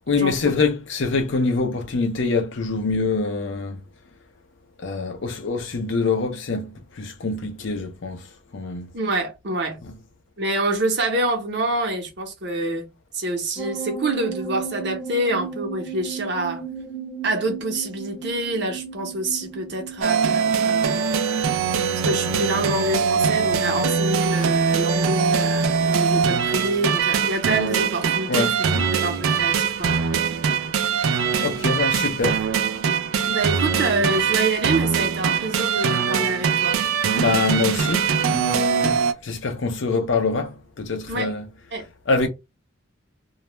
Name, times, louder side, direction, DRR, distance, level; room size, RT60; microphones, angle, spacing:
voice 1, 0.1-3.8 4.8-8.9 9.8-9.9 28.3-28.9 31.4-32.5 37.1-41.5 42.1-42.3, left 4 dB, 65° left, 0.6 m, -25 dB
voice 2, 8.9-9.8 10.4-12.9 13.1-16.6 17.2-21.5 22.0-28.6 28.9-30.3 33.3-36.8 41.1-41.3 41.7-41.9, right 2 dB, 55° right, 0.8 m, -26 dB
sound 1, 13.6-21.0, right 7 dB, 25° left, 0.8 m, -35 dB
sound 2, 20.0-39.1, right 6 dB, 85° right, 0.4 m, -22 dB
2.3 x 2.1 x 3.0 m
head